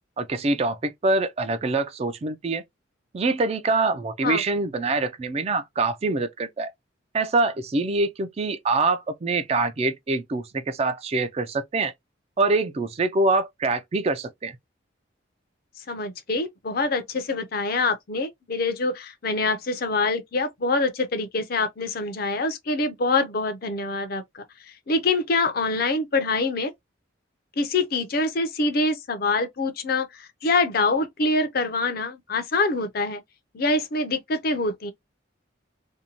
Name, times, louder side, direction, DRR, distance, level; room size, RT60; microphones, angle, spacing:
voice 1, 0.2-2.6 3.1-6.7 7.1-11.9 12.4-14.6, right 3 dB, 30° right, 0.3 m, -25 dB
voice 2, 15.9-24.4 24.9-26.7 27.6-33.2 33.5-34.9, left 3 dB, 50° left, 0.5 m, -25 dB
2.6 x 2.1 x 2.8 m
head